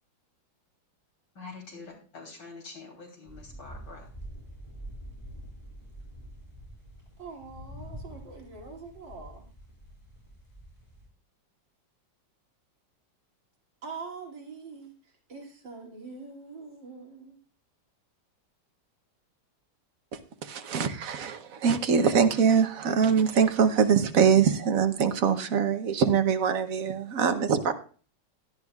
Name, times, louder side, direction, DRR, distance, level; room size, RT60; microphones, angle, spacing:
voice 1, 1.3-4.1, left 3 dB, 90° left, 1 dB, 4.1 m, -45 dB
sound 1, 3.3-11.1, equal, 15° left, 5.4 m, -46 dB
voice 2, 7.2-9.4 13.8-17.4, right 4 dB, 75° right, -1 dB, 3.3 m, -44 dB
voice 3, 20.4-27.7, right 7 dB, 55° right, 8 dB, 1.2 m, -23 dB
17.0 x 11.5 x 2.4 m, 0.39 s
omnidirectional pair, 2.0 m